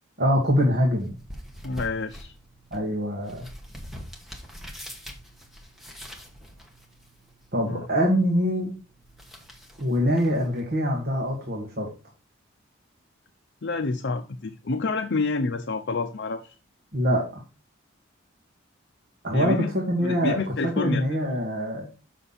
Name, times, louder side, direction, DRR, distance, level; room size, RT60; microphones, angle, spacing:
voice 1, 0.2-1.1 2.7-3.5 7.5-8.8 9.8-11.9 16.9-17.4 19.2-20.4 20.8-22.0, equal, 45° right, 1.6 m, -24 dB
sound 1, 0.5-11.5, equal, ahead, 1.3 m, -45 dB
voice 2, 1.6-2.3 7.6-7.9 13.6-16.5 19.3-19.7 20.0-21.0, left 3 dB, 55° left, 0.6 m, -28 dB
7.2 x 5.8 x 4.1 m
head